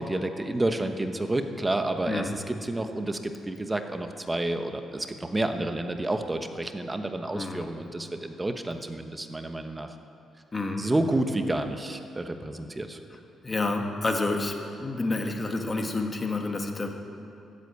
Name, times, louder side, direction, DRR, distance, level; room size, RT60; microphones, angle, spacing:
voice 1, 0.0-10.0 10.8-13.0, right 1 dB, 20° right, 7 dB, 1.1 m, -30 dB
voice 2, 2.1-2.4 7.3-7.7 10.5-10.9 13.4-16.9, left 2 dB, 30° left, 3 dB, 1.6 m, -29 dB
12.5 x 8.3 x 8.2 m, 2.9 s
cardioid pair, 75°, 0 cm